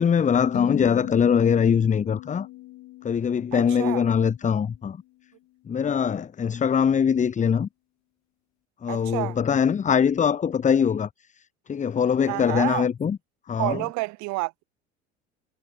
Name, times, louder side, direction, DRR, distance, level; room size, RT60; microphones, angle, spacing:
voice 1, 0.0-2.5 3.0-5.0 5.7-7.7 8.8-11.1 11.4-11.5 11.7-13.2 13.5-13.8, left 7 dB, 20° left, 0.7 m, -22 dB
sound 1, 0.5-4.9, left 18 dB, 55° left, 1.5 m, -39 dB
voice 2, 3.5-4.0 8.9-9.4 12.3-12.9 13.6-14.6, right 25 dB, 60° right, 0.9 m, -29 dB
hypercardioid pair, 70°, 33 cm